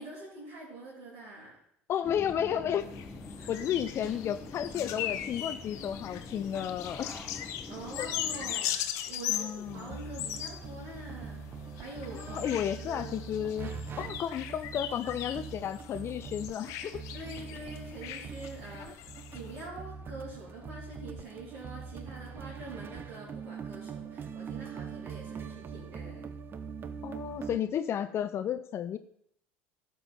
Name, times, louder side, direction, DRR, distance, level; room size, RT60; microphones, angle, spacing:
voice 1, 0.0-1.5 3.4-3.6 7.7-11.4 11.7-13.3 17.1-19.0 19.3-26.3, right 2 dB, 65° right, -8 dB, 3.4 m, -45 dB
voice 2, 1.9-2.9 3.5-7.1 8.0-8.1 9.3-10.0 12.1-17.0 18.8-18.9 27.0-29.0, left 9 dB, 45° left, 12 dB, 0.5 m, -33 dB
sound 1, 2.0-8.5, left 2 dB, 5° left, 1.3 m, -45 dB
sound 2, 2.8-19.7, left 11 dB, 60° left, 0.8 m, -39 dB
sound 3, 9.7-27.6, right 6 dB, 35° right, 0.7 m, -43 dB
12.0 x 5.5 x 4.3 m, 0.69 s
hypercardioid pair, 70°, 6 cm